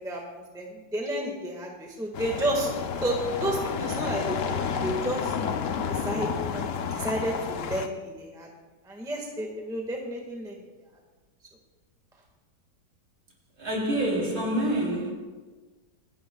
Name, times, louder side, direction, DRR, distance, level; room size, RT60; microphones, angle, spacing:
voice 1, 0.0-2.7 3.0-5.3 5.9-8.5 8.8-10.6, right 1 dB, ahead, 1.4 m, -31 dB
sound 1, 2.1-7.9, left 6 dB, 60° left, 0.8 m, -31 dB
voice 2, 13.6-15.1, right 1 dB, 75° right, 4.0 m, -27 dB
27.0 x 10.0 x 2.3 m
omnidirectional pair, 1.9 m